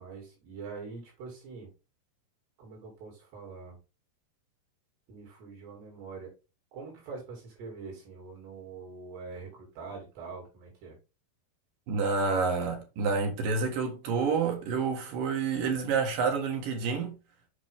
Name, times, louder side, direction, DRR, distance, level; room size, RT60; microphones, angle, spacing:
voice 1, 0.0-1.7 2.6-3.8 5.1-6.3 6.7-11.0, right 4 dB, 80° right, 4.7 m, -44 dB
voice 2, 11.9-17.2, right 5 dB, 60° right, 3.1 m, -28 dB
8.0 x 5.1 x 3.5 m
omnidirectional pair, 4.7 m